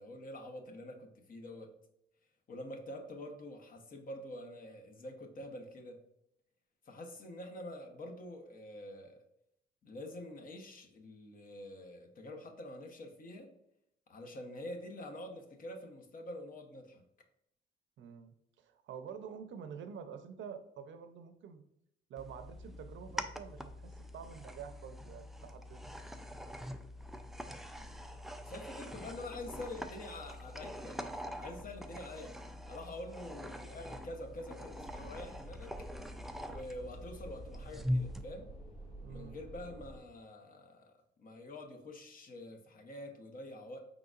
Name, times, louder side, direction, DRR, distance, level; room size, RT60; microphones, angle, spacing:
voice 1, 0.0-1.7 2.5-6.0 6.9-9.2 9.8-13.5 14.1-17.0 27.7-28.0 28.4-32.3 32.7-35.9 36.5-38.5 39.1-40.9 41.2-43.8, left 1 dB, 45° left, 4 dB, 0.9 m, -46 dB
voice 2, 18.0-21.6 22.1-26.0 39.0-39.4, right 7 dB, 70° right, 8 dB, 0.6 m, -48 dB
sound 1, 22.2-38.2, equal, ahead, 0.3 m, -43 dB
sound 2, 34.6-40.0, right 1 dB, 30° left, 1.6 m, -50 dB
5.0 x 3.9 x 2.4 m, 0.79 s
cardioid pair, 90°, 20 cm